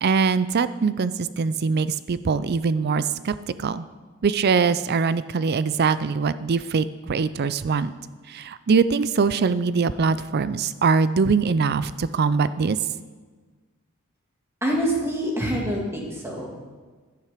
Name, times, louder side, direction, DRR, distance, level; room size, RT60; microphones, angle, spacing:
voice 1, 0.0-3.3 3.6-3.8 4.2-7.9 8.3-12.8, right 5 dB, 50° right, 15 dB, 0.4 m, -22 dB
voice 2, 14.6-16.7, equal, 10° right, -1 dB, 2.0 m, -26 dB
11.5 x 9.8 x 5.0 m, 1.4 s
head